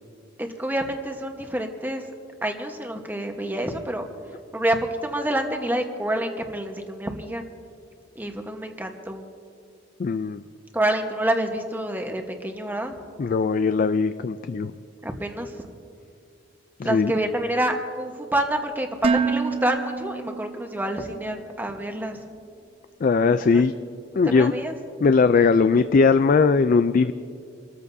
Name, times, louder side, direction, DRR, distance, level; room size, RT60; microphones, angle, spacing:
voice 1, 0.4-2.0 2.4-4.0 4.5-7.4 8.1-9.2 10.7-13.0 15.0-15.7 16.8-22.2 23.5-23.6 24.2-24.7, right 1 dB, 10° right, 4 dB, 1.1 m, -27 dB
voice 2, 10.0-10.4 13.2-14.7 16.8-17.1 23.0-23.7 24.2-24.5 25.0-27.1, left 4 dB, 45° left, 11 dB, 0.3 m, -19 dB
Dishes pots and pans, 19.0-21.1, right 4 dB, 30° right, 0.3 m, -26 dB
29.5 x 14.0 x 2.7 m, 2.4 s
head